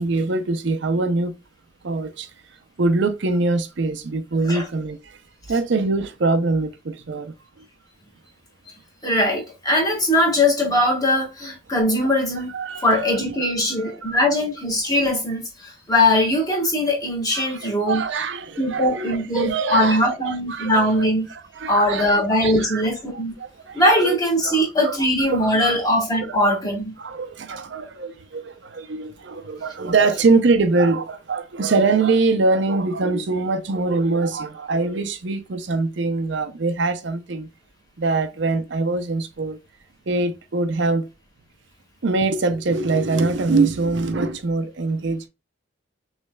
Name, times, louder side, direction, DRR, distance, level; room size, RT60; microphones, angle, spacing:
voice 1, 0.0-1.3 1.8-2.3 2.8-5.2 5.5-7.3 12.5-14.1 17.3-22.8 23.4-24.2 24.4-25.0 25.3-25.8 26.3-26.6 27.0-37.5 38.0-39.6 40.1-41.1 42.0-45.3, right 3 dB, 60° right, 0.5 m, -23 dB
voice 2, 9.0-12.5 12.8-18.0 18.6-21.3 21.7-23.3 23.7-26.9, left 1 dB, 20° left, 1.5 m, -21 dB
6.3 x 3.2 x 2.2 m
head